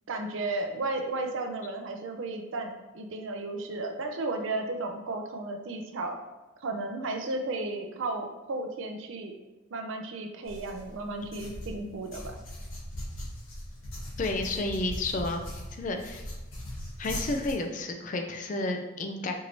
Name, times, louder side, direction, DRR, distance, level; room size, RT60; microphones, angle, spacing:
voice 1, 0.1-6.2 6.6-9.3 9.7-12.4, right 2 dB, 70° right, 4 dB, 0.5 m, -34 dB
sound 1, 10.4-17.5, equal, 75° left, 1.2 m, -40 dB
voice 2, 14.2-16.2 17.0-19.3, left 2 dB, 40° left, 4 dB, 0.4 m, -31 dB
4.5 x 2.6 x 3.0 m, 1.1 s
head